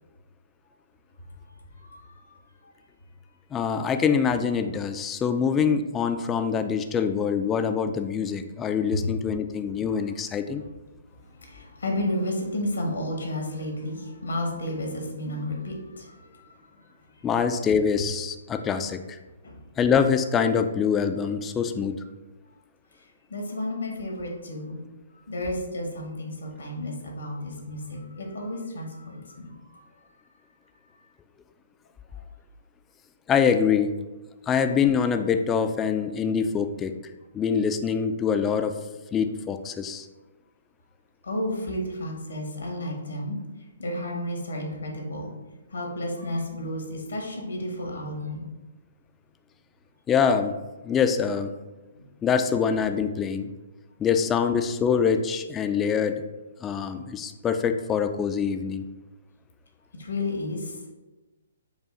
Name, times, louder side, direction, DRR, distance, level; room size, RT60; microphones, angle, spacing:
voice 1, 1.7-2.4 8.9-9.0 11.3-16.5 16.8-16.9 19.4-19.6 23.3-24.8 25.3-29.8 32.1-32.2 41.2-43.4 43.8-45.3 45.7-48.5 51.9-52.1 60.0-60.9, left 1 dB, 75° left, 1 dB, 1.0 m, -32 dB
voice 2, 3.5-10.6 17.2-19.2 19.8-22.0 33.3-34.0 34.5-37.0 37.3-38.8 39.1-40.1 50.1-50.5 50.8-51.5 52.2-53.5 54.0-56.2 56.6-58.8, left 6 dB, 15° left, 8 dB, 0.3 m, -24 dB
5.0 x 2.3 x 3.9 m, 1.1 s
figure-of-eight pair, 130°, 0 cm